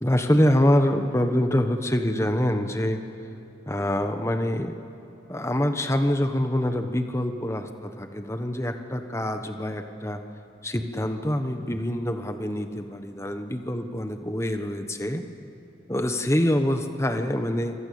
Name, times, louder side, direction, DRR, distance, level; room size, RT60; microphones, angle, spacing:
voice 1, 0.0-3.0 3.7-4.8 5.3-10.2 10.6-15.2 15.9-17.7, left 1 dB, 15° left, 6 dB, 1.3 m, -25 dB
27.0 x 25.0 x 8.7 m, 2.8 s
head